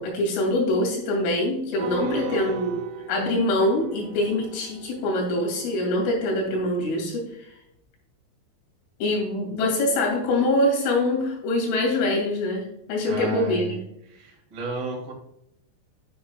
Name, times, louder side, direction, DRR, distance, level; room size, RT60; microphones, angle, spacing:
voice 1, 0.0-2.7 3.1-7.5 9.0-13.8, left 1 dB, 80° left, -1 dB, 5.2 m, -24 dB
sound 1, 1.8-6.5, right 4 dB, 80° right, 3.3 m, -36 dB
voice 2, 1.9-2.8 13.0-13.7 14.1-15.1, right 2 dB, 35° right, -1 dB, 1.9 m, -34 dB
10.0 x 7.2 x 2.3 m, 0.78 s
omnidirectional pair, 5.7 m